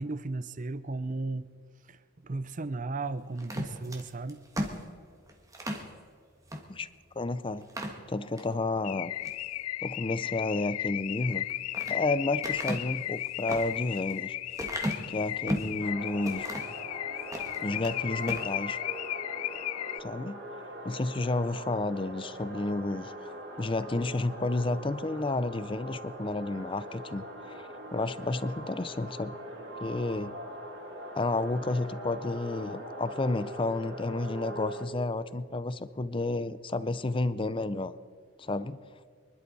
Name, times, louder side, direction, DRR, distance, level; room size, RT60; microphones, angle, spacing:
voice 1, 0.0-1.5 1.8-4.4, right 3 dB, 35° right, 14 dB, 0.6 m, -35 dB
sound 1, 3.4-5.9 6.5-6.6 7.0-7.1 7.6-8.5 9.0-9.4 11.2-12.0 12.4-15.8 16.2-16.8 17.2-18.0 18.2-18.5, equal, 15° right, 1.6 m, -36 dB
voice 2, 7.2-7.7 8.1-9.1 9.8-11.5 11.9-14.4 15.1-16.5 17.6-18.8 20.0-20.4 20.8-29.4 29.8-30.3 31.1-37.9 38.4-38.8, left 2 dB, 25° left, 15 dB, 0.5 m, -31 dB
Car / Alarm, 8.8-20.0, left 15 dB, 90° left, 0.3 m, -35 dB
sound 2, 15.8-34.9, equal, 55° right, 3.5 m, -42 dB
25.5 x 11.5 x 4.1 m, 2.1 s
head